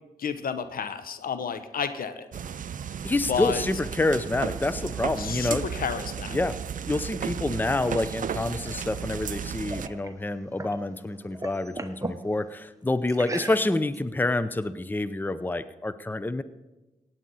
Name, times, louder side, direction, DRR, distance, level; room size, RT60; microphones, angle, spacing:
voice 1, 0.2-2.3 3.3-3.6 5.2-6.3, left 7 dB, 70° left, 11 dB, 0.9 m, -31 dB
sound 1, 2.3-9.9, right 8 dB, 60° right, 0.5 m, -34 dB
voice 2, 3.0-5.6 6.3-6.6 6.9-16.4, left 2 dB, 10° left, 14 dB, 0.6 m, -27 dB
sound 2, 7.8-10.8 11.2-12.2 13.1-14.0, right 2 dB, 20° right, 1.1 m, -39 dB
16.5 x 9.5 x 4.1 m, 1.1 s
supercardioid pair, 50°, 15 cm